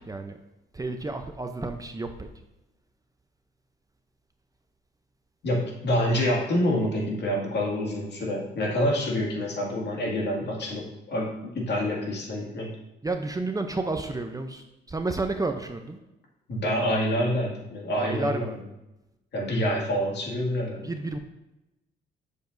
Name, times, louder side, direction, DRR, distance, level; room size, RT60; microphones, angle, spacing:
voice 1, 0.1-0.4 0.7-2.3 13.0-16.0 18.0-18.6 20.8-21.2, right 3 dB, 20° right, 6 dB, 0.6 m, -31 dB
voice 2, 5.4-12.7 16.5-18.5 19.3-20.9, equal, 60° left, -2 dB, 2.2 m, -27 dB
8.2 x 6.8 x 2.6 m, 0.94 s
cardioid pair, 90°, 20 cm